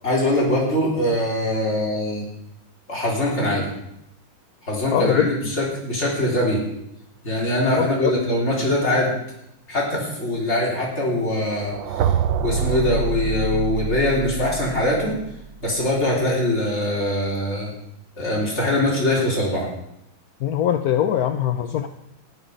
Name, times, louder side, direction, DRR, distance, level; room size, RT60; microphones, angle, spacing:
voice 1, 0.0-2.2 2.9-3.7 4.6-6.6 7.2-9.1 9.7-12.1 12.4-15.1 15.6-17.7 18.2-19.7, left 1 dB, 30° left, -4 dB, 4.3 m, -22 dB
voice 2, 4.9-5.3 7.7-8.1 20.4-21.9, left 10 dB, 70° left, 8 dB, 0.9 m, -22 dB
sound 1, 11.6-15.6, right 6 dB, 70° right, 1.4 m, -26 dB
14.0 x 11.0 x 5.4 m, 0.81 s
omnidirectional pair, 2.3 m